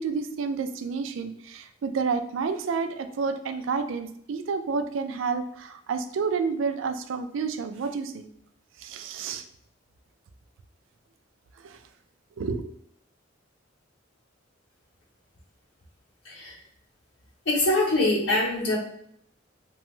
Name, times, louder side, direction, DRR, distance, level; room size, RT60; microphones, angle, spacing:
voice 1, 0.0-8.2 8.8-9.4 11.6-11.8 12.4-12.6, right 5 dB, 75° right, 8 dB, 0.4 m, -30 dB
voice 2, 16.2-16.6 17.5-18.8, left 2 dB, 65° left, -4 dB, 0.7 m, -24 dB
2.9 x 2.3 x 3.0 m, 0.66 s
head